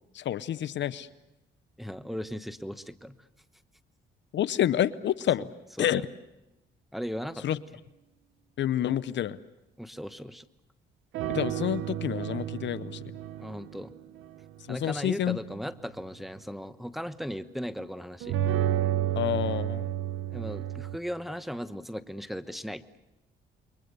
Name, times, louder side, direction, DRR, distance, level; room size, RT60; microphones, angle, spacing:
voice 1, 0.1-1.1 4.3-5.5 5.8-6.0 7.4-7.6 8.6-9.4 11.3-13.0 14.7-15.4 19.1-19.9, left 11 dB, 65° left, 16 dB, 0.8 m, -28 dB
voice 2, 1.8-3.1 5.8-6.0 6.9-7.4 9.8-10.5 13.4-13.9 14.7-18.4 20.3-22.8, equal, ahead, 11 dB, 1.1 m, -37 dB
sound 1, 11.1-13.8 14.2-14.3 18.2-21.0, right 11 dB, 85° right, 0.9 m, -30 dB
29.0 x 23.0 x 6.8 m, 0.96 s
cardioid pair, 90°, 20 cm